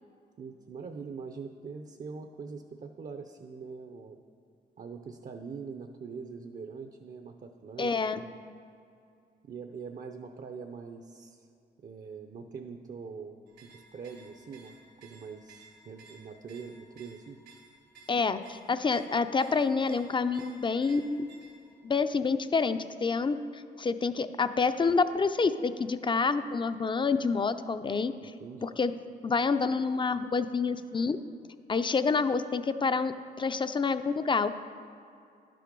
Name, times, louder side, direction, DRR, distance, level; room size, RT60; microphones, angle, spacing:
voice 1, 0.4-4.2 4.8-8.3 9.4-11.5 11.8-14.7 15.0-17.4 28.2-28.7, right 5 dB, 50° right, 6 dB, 0.6 m, -43 dB
voice 2, 7.8-8.2 18.1-21.3 21.8-28.1 28.6-28.9 29.2-31.2 31.7-34.5, left 4 dB, 30° left, 11 dB, 0.4 m, -28 dB
sound 1, 13.5-21.8, right 3 dB, 90° right, 2.1 m, -56 dB
11.5 x 7.6 x 5.3 m, 2.5 s
cardioid pair, 110°, 17 cm